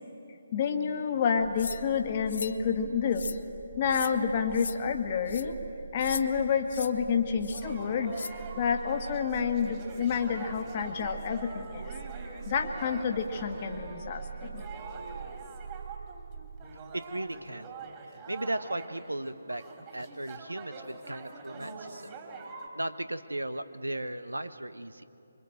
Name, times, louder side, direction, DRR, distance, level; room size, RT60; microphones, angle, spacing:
voice 1, 0.5-3.3 3.8-5.6 5.9-11.9 12.3-14.7, left 6 dB, 35° left, 5 dB, 1.6 m, -29 dB
sound 1, 1.3-16.6, right 6 dB, 40° right, 3.0 m, -44 dB
sound 2, 1.6-1.8 2.3-2.6 3.1-3.4 3.9-4.1 4.5-4.8 5.3-5.4 6.0-6.2 6.7-6.9 7.4-7.6 8.1-8.3, left 5 dB, 60° left, 0.8 m, -38 dB
sound 3, 7.5-22.7, right 4 dB, 25° right, 3.0 m, -45 dB
voice 2, 16.9-17.7 18.3-19.6 19.9-22.2 22.7-25.0, right 1 dB, 90° right, 12 dB, 1.0 m, -36 dB
25.0 x 23.0 x 7.8 m, 2.8 s
figure-of-eight pair, 145°, 0 cm